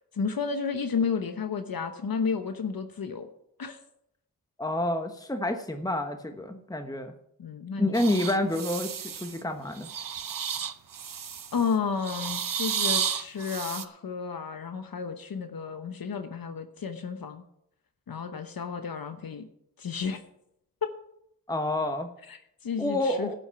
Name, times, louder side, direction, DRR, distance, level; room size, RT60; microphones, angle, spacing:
voice 1, 0.1-3.3 3.6-3.8 7.4-7.9 11.5-17.4 18.1-19.5 19.8-20.2 20.8-20.9 22.3-23.4, left 5 dB, 80° left, 7 dB, 1.0 m, -32 dB
voice 2, 4.6-7.1 7.8-9.9 21.5-22.1 22.8-23.4, left 1 dB, 10° left, 6 dB, 1.2 m, -28 dB
sound 1, 7.9-9.4 9.8-11.6 12.0-13.8, right 7 dB, 65° right, 0.8 m, -32 dB
12.0 x 8.7 x 5.8 m, 0.75 s
wide cardioid pair, 60°, 35 cm